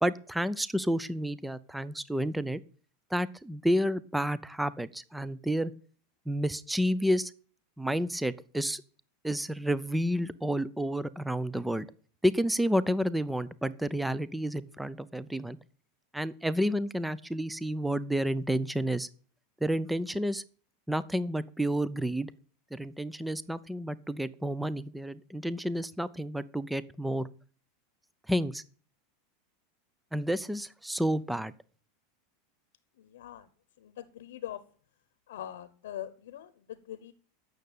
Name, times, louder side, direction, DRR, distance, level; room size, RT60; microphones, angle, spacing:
voice 1, 0.0-2.6 3.1-5.7 6.3-7.3 7.8-8.8 9.2-11.9 12.2-15.6 16.1-19.1 19.6-20.4 20.9-22.3 22.7-27.3 28.3-28.6 30.1-31.5, equal, 5° right, 18 dB, 0.5 m, -30 dB
voice 2, 33.0-33.5 33.8-34.6 35.3-37.1, left 11 dB, 85° left, 13 dB, 0.9 m, -42 dB
8.8 x 6.6 x 8.3 m, 0.43 s
supercardioid pair, 135°, 0 cm